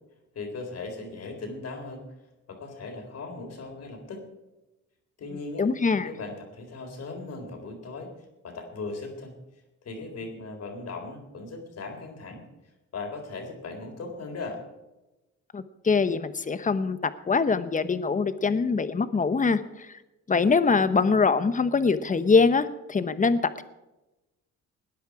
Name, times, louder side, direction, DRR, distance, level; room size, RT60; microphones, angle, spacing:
voice 1, 0.3-2.0 2.5-4.2 5.2-5.7 6.0-8.1 8.4-9.3 9.8-12.4 12.9-14.6, left 3 dB, 55° left, 3 dB, 4.1 m, -38 dB
voice 2, 5.6-6.1 15.5-17.0 17.3-19.9 20.3-23.6, left 4 dB, 25° left, 13 dB, 1.0 m, -23 dB
19.0 x 10.0 x 4.9 m, 1.0 s
cardioid pair, 90°, 30 cm